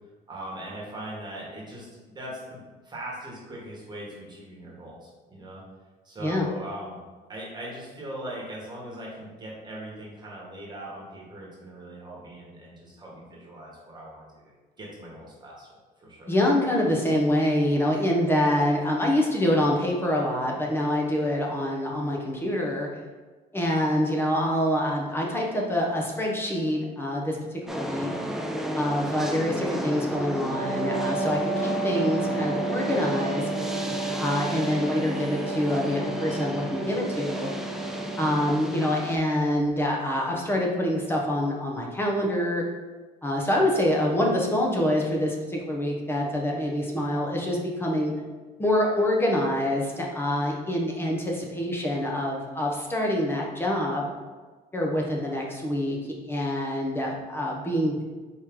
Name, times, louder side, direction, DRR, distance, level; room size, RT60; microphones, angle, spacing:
voice 1, 0.3-5.6 6.0-7.0 7.3-14.5 14.8-15.7 16.0-16.3, right 1 dB, 25° right, -4 dB, 1.5 m, -40 dB
voice 2, 16.3-22.9 23.5-28.1 28.7-33.5 34.2-37.5 38.2-42.6 43.2-48.1 48.6-54.1 54.7-56.0 56.3-58.0, left 1 dB, 15° left, -1 dB, 0.9 m, -26 dB
sound 1, 27.7-39.2, equal, ahead, 0.4 m, -33 dB
Wind instrument woodwind instrument, 30.5-38.6, right 2 dB, 65° right, 0.8 m, -32 dB
4.5 x 3.1 x 3.6 m, 1.3 s
cardioid pair, 110°, 17 cm